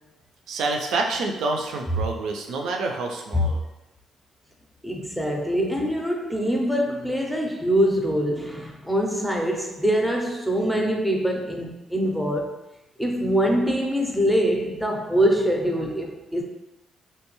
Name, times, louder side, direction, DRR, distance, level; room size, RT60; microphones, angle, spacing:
voice 1, 0.5-3.6, right 3 dB, 80° right, 0.4 m, -27 dB
voice 2, 4.8-12.6 13.0-16.4, equal, ahead, 0.5 m, -24 dB
2.9 x 2.2 x 3.0 m
cardioid pair, 90°, 0 cm